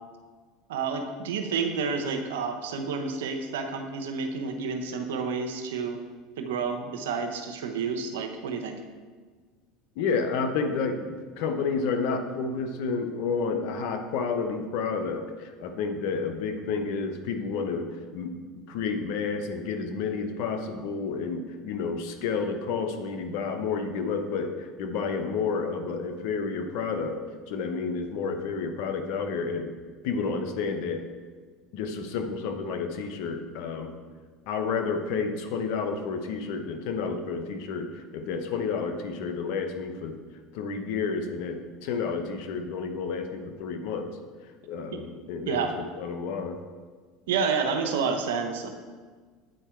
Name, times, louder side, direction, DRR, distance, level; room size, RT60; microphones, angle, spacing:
voice 1, 0.7-6.0 6.4-8.8 45.5-45.8 47.3-48.7, right 5 dB, 90° right, 5 dB, 0.8 m, -29 dB
voice 2, 10.0-17.9 18.1-18.3 18.7-27.2 27.5-29.7 30.0-31.0 31.7-33.9 34.5-40.1 40.5-44.1 44.6-45.6 46.0-46.6, left 5 dB, 70° left, 6 dB, 0.9 m, -30 dB
8.8 x 4.5 x 4.5 m, 1.5 s
supercardioid pair, 105°, 0 cm